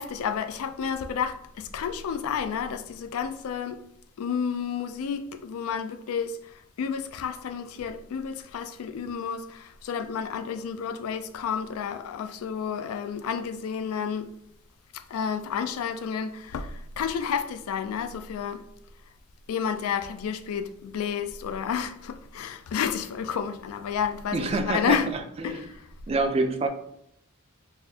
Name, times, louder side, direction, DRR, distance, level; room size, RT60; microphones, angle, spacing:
voice 1, 0.0-3.8 4.2-6.4 6.8-14.3 15.1-18.6 19.5-25.1 25.4-25.6, left 7 dB, 85° left, 0.3 m, -31 dB
voice 2, 24.3-25.7 26.1-26.7, right 2 dB, 30° right, 0.3 m, -27 dB
4.0 x 2.5 x 2.7 m
head